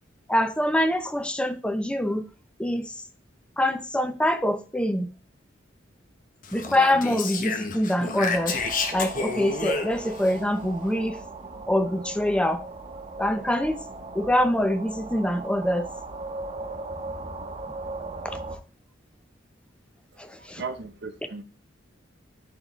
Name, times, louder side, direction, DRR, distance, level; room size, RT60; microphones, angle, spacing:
voice 1, 0.3-2.2 2.6-3.0 3.6-5.1 6.5-8.7 8.9-11.2 11.7-12.6 13.2-13.8 14.1-15.9 18.2-18.4 20.2-20.6, left 1 dB, 5° left, 0.5 m, -25 dB
Speech, 6.4-10.3, left 4 dB, 45° left, 0.9 m, -30 dB
sound 1, 8.3-18.6, right 3 dB, 35° right, 1.1 m, -38 dB
voice 2, 20.1-21.4, right 4 dB, 60° right, 0.8 m, -37 dB
11.5 x 3.9 x 3.1 m
head